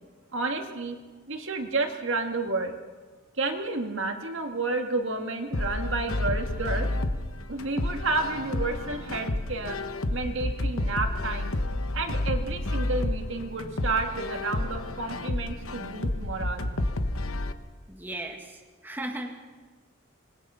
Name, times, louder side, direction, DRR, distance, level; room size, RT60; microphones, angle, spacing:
voice 1, 0.3-1.0 1.3-2.7 3.4-6.9 7.5-9.8 10.1-11.5 11.9-16.7, right 3 dB, 65° right, 4 dB, 2.0 m, -30 dB
sound 1, 5.5-17.5, left 1 dB, 75° left, 1.2 m, -30 dB
voice 2, 17.9-19.3, right 1 dB, 10° right, 2 dB, 1.7 m, -36 dB
26.0 x 20.0 x 5.7 m, 1.3 s
head